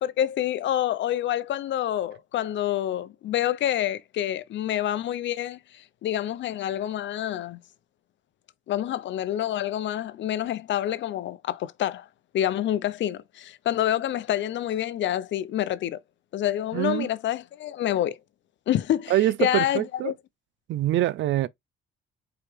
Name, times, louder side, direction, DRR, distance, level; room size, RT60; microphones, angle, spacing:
voice 1, 0.0-7.6 8.7-12.1 12.3-16.0 16.3-18.2 18.7-20.1, left 11 dB, 70° left, 0.6 m, -27 dB
voice 2, 16.7-17.1 19.1-20.1 20.7-21.5, right 13 dB, 75° right, 0.4 m, -24 dB
4.9 x 2.9 x 3.2 m
cardioid pair, 90°, 20 cm